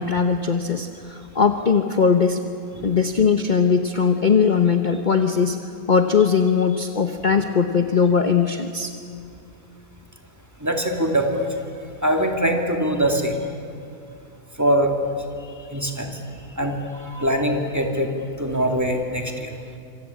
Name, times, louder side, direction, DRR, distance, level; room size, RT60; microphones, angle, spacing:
voice 1, 0.0-2.4 2.8-5.6 5.9-8.9, left 6 dB, 35° left, 6 dB, 1.1 m, -20 dB
voice 2, 10.6-11.5 12.0-13.4 14.6-14.9 15.7-16.2 16.6-16.8 17.0-18.1 18.4-19.5, right 1 dB, 10° right, 2 dB, 2.6 m, -22 dB
26.5 x 25.5 x 8.6 m, 2.5 s
omnidirectional pair, 1.5 m